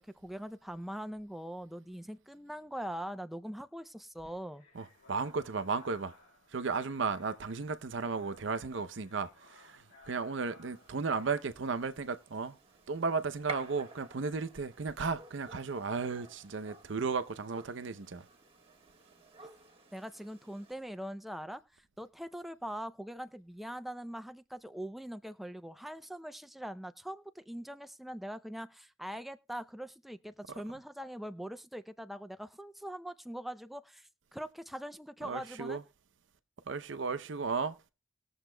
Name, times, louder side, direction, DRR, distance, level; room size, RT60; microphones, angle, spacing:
voice 1, 0.0-4.6 19.9-35.8, equal, ahead, 0.4 m, -42 dB
sound 1, 4.2-11.5, left 3 dB, 75° left, 1.8 m, -61 dB
voice 2, 4.7-6.1 6.5-12.6 12.9-18.3 35.2-35.8 36.7-37.8, right 4 dB, 65° right, 0.7 m, -35 dB
Gunshot gunfire, 10.7-20.7, right 3 dB, 30° right, 1.4 m, -52 dB
20.0 x 7.1 x 2.2 m
head